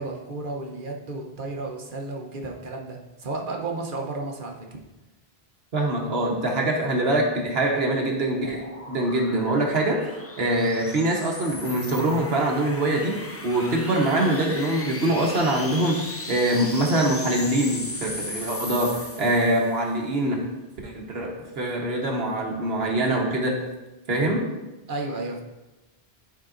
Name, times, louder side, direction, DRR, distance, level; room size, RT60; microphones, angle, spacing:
voice 1, 0.0-4.6 24.9-25.4, right 2 dB, 55° right, 1 dB, 1.0 m, -32 dB
voice 2, 5.7-10.0 10.4-13.2 13.4-16.0 16.3-20.4 20.8-23.6 24.1-24.5, right 1 dB, 75° right, 0 dB, 1.2 m, -24 dB
sound 1, 7.8-19.8, left 2 dB, 20° left, 0.4 m, -37 dB
10.5 x 4.8 x 2.5 m, 1.1 s
omnidirectional pair, 1.0 m